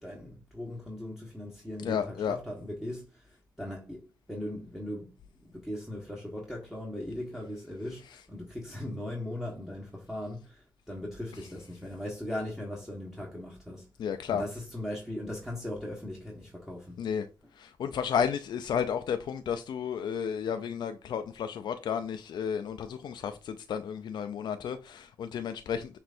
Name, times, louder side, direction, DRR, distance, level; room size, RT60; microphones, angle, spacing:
voice 1, 0.0-5.1 5.4-13.9 14.3-17.0, left 1 dB, 5° right, 1.2 m, -39 dB
voice 2, 1.8-2.4 14.0-14.4 17.0-17.3 17.5-26.0, left 7 dB, 70° left, 0.4 m, -32 dB
6.1 x 3.2 x 2.5 m
cardioid pair, 90°, 8 cm